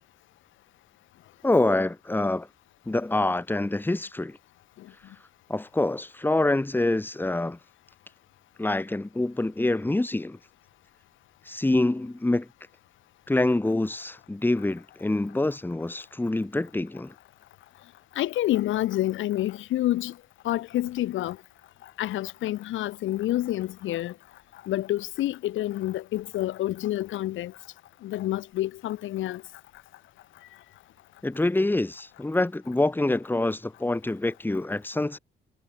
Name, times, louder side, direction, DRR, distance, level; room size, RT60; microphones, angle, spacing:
voice 1, 1.4-2.5 2.9-4.4 5.5-7.6 8.6-10.4 11.5-12.5 13.3-17.1 31.2-35.2, left 2 dB, 10° left, 1.5 m, -26 dB
voice 2, 18.2-20.1 20.4-21.4 22.0-24.1 24.6-27.5 28.0-29.4, left 14 dB, 80° left, 1.0 m, -28 dB
cardioid pair, 90°, 20 cm